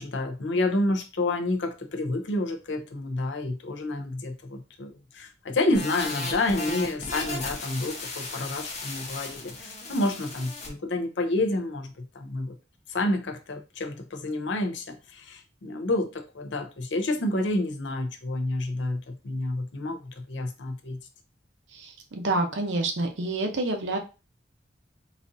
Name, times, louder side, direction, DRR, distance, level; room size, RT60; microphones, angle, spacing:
voice 1, 0.0-12.5 12.9-21.0, left 2 dB, 80° left, 0.6 m, -29 dB
sound 1, 5.7-10.7, left 2 dB, 40° left, 0.9 m, -36 dB
voice 2, 21.7-24.0, right 2 dB, 90° right, 0.8 m, -28 dB
4.1 x 2.5 x 2.6 m
head